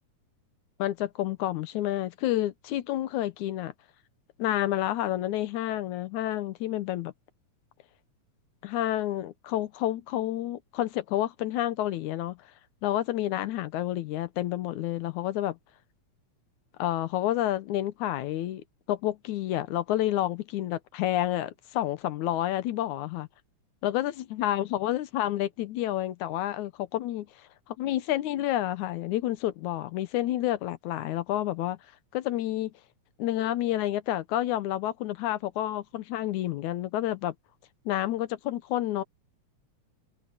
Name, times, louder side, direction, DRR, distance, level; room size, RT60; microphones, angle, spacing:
voice 1, 0.8-3.7 4.4-7.1 8.6-12.4 12.8-15.6 16.8-18.6 18.9-23.3 23.8-27.3 27.7-31.8 32.1-32.7 33.2-37.3 37.9-39.0, left 13 dB, 85° left, 2.4 m, -29 dB
omnidirectional pair, 3.3 m